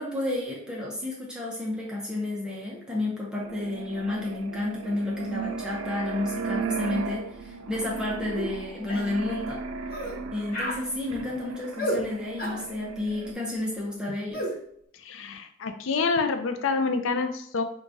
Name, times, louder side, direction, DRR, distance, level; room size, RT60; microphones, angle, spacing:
voice 1, 0.0-9.6 10.3-14.5, left 2 dB, 5° right, -5 dB, 0.6 m, -31 dB
sound 1, 3.4-13.3, right 5 dB, 85° right, 0.4 m, -36 dB
sound 2, 8.3-8.5 8.9-9.1 9.9-10.2 10.5-10.8 11.8-12.0 12.4-12.6 14.3-14.5, equal, 45° left, 0.7 m, -30 dB
voice 2, 14.9-17.6, left 4 dB, 70° left, 8 dB, 0.4 m, -27 dB
4.6 x 2.3 x 2.6 m, 0.68 s
head